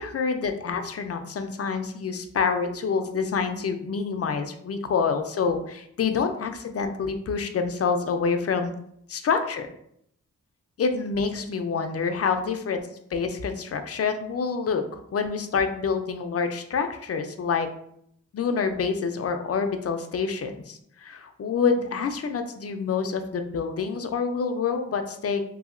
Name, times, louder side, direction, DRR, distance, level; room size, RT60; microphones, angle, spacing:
voice 1, 0.0-8.7 9.1-9.7 10.8-12.8 13.1-14.8 15.1-17.7 18.3-25.4, left 5 dB, 45° left, 7 dB, 0.4 m, -27 dB
2.8 x 2.7 x 2.5 m, 0.71 s
cardioid pair, 40°, 33 cm